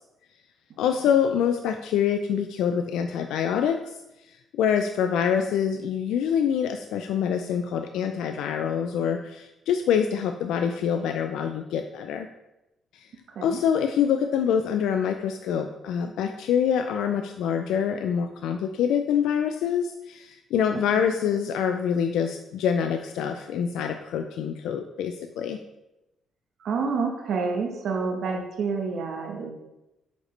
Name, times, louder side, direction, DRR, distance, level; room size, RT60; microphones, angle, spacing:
voice 1, 0.8-3.9 4.5-12.3 13.4-25.6, left 8 dB, 85° left, 6 dB, 0.4 m, -25 dB
voice 2, 26.6-29.5, right 4 dB, 65° right, 2 dB, 1.1 m, -28 dB
7.9 x 5.1 x 3.2 m, 0.93 s
cardioid pair, 90°, 0 cm